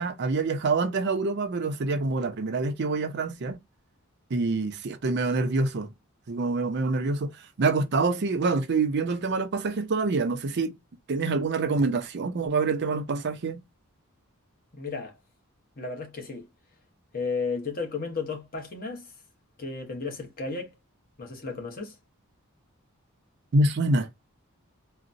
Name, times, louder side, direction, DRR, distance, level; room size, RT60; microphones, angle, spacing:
voice 1, 0.0-3.6 4.3-5.9 6.3-7.3 7.6-10.7 11.1-13.6 23.5-24.1, right 3 dB, 50° right, 0.5 m, -26 dB
voice 2, 14.7-15.2 15.8-16.5 17.1-19.1 19.6-20.7 21.2-21.9, left 4 dB, 45° left, 0.9 m, -33 dB
3.9 x 2.1 x 2.5 m
head